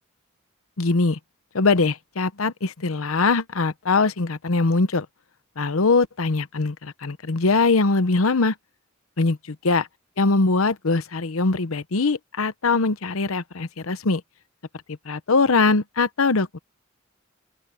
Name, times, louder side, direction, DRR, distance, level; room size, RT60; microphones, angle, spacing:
voice 1, 0.8-1.2 1.5-5.1 5.6-8.5 9.2-9.4 9.6-9.8 10.2-14.2 15.1-16.6, left 3 dB, 90° left, 0.9 m, -22 dB
open air
head